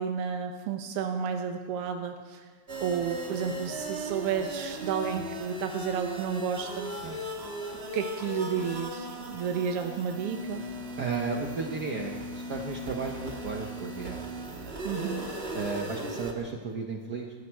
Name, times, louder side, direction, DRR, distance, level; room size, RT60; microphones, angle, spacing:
voice 1, 0.0-2.5 2.8-6.9 7.9-10.6 14.8-15.3, right 7 dB, 70° right, 4 dB, 1.5 m, -31 dB
sound 1, 2.7-16.3, right 1 dB, 35° right, 0.9 m, -37 dB
voice 2, 11.0-14.2 15.5-17.3, right 5 dB, 85° right, 2 dB, 0.9 m, -34 dB
19.5 x 13.5 x 4.7 m, 1.5 s
omnidirectional pair, 3.5 m